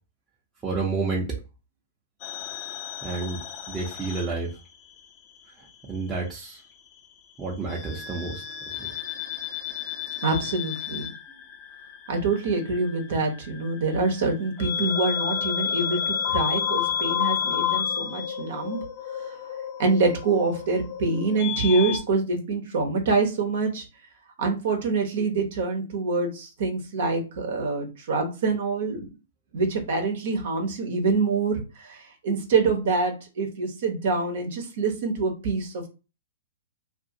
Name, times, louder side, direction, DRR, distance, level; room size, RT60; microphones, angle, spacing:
voice 1, 0.6-1.3 3.0-3.4 3.7-4.5 5.6-6.6 7.4-8.4 8.8-8.9, right 3 dB, 15° right, -5 dB, 0.7 m, -30 dB
sound 1, 2.2-5.0 5.3-6.5 7.7-22.0, left 9 dB, 45° left, 0.5 m, -31 dB
voice 2, 10.2-11.1 12.1-18.8 19.1-19.2 19.8-23.9 24.4-29.1 29.5-35.9, right 3 dB, 60° right, 4 dB, 0.8 m, -25 dB
2.5 x 2.4 x 2.7 m, 0.30 s
hypercardioid pair, 125°, 0 cm